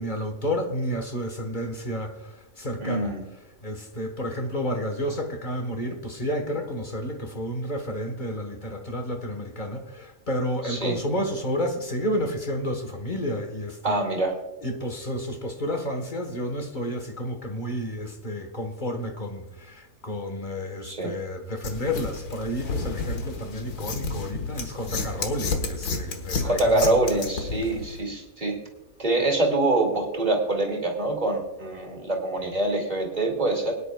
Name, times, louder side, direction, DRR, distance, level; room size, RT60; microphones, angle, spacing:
voice 1, 0.0-3.1 3.6-14.0 14.6-27.0, equal, 35° left, 1.4 m, -31 dB
voice 2, 2.8-3.2 10.6-11.0 13.8-14.3 20.8-21.1 26.4-28.6 29.0-33.7, right 2 dB, 30° right, 2.5 m, -25 dB
sound 1, 21.6-28.0, left 4 dB, 85° left, 1.9 m, -31 dB
23.0 x 9.9 x 2.3 m
omnidirectional pair, 1.6 m